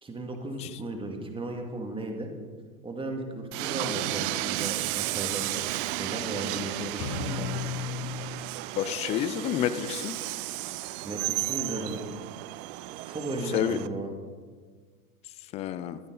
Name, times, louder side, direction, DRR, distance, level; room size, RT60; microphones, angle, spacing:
voice 1, 0.0-2.3 2.8-5.5 5.9-7.5 11.0-12.0 13.1-14.1, right 2 dB, 10° right, 3 dB, 2.2 m, -35 dB
Train, 3.5-13.9, right 17 dB, 40° right, 0.5 m, -33 dB
sound 1, 7.0-9.0, left 7 dB, 65° left, 4.7 m, -35 dB
voice 2, 8.8-10.2 13.5-13.8 15.5-16.0, left 11 dB, 15° left, 13 dB, 0.3 m, -29 dB
25.0 x 8.8 x 4.0 m, 1.6 s
hypercardioid pair, 110°, 45 cm